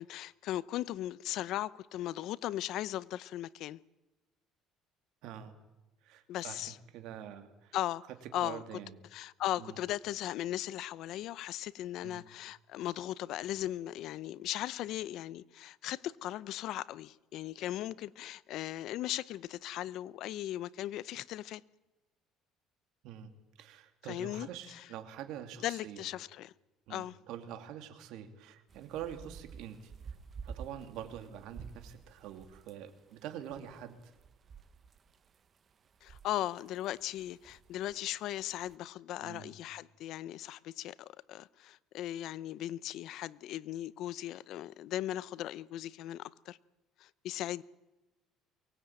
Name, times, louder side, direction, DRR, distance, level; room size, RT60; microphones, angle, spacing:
voice 1, 0.0-3.8 6.3-6.8 7.7-8.0 8.3-8.6 9.1-21.6 24.1-24.9 25.6-26.5 26.9-27.2 36.0-46.6 47.0-47.6, left 13 dB, 60° left, 0.7 m, -38 dB
voice 2, 5.2-5.5 6.0-7.8 8.4-8.9 9.6-9.8 12.0-12.2 23.0-23.3 23.6-26.1 26.9-30.1 30.4-34.1 39.2-39.6, right 9 dB, 70° right, 2.8 m, -45 dB
sound 1, 28.7-38.8, right 6 dB, 35° right, 1.2 m, -51 dB
23.5 x 19.0 x 9.0 m
cardioid pair, 130°, 0 cm